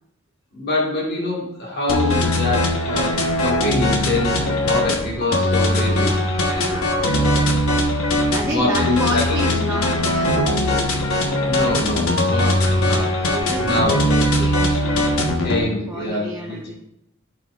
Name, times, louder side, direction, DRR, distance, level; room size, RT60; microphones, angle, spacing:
voice 1, 0.5-4.4 4.6-6.2 6.4-6.9 7.1-7.6 8.4-9.5 11.5-13.1 13.6-14.0 15.4-16.7, left 1 dB, 50° left, -3 dB, 1.9 m, -25 dB
sound 1, 1.9-15.6, left 1 dB, 85° left, 1.3 m, -20 dB
voice 2, 5.8-6.2 6.5-7.4 8.3-10.9 13.3-15.1 15.5-16.7, equal, 15° right, -3 dB, 0.9 m, -30 dB
12.5 x 5.9 x 2.5 m, 0.80 s
head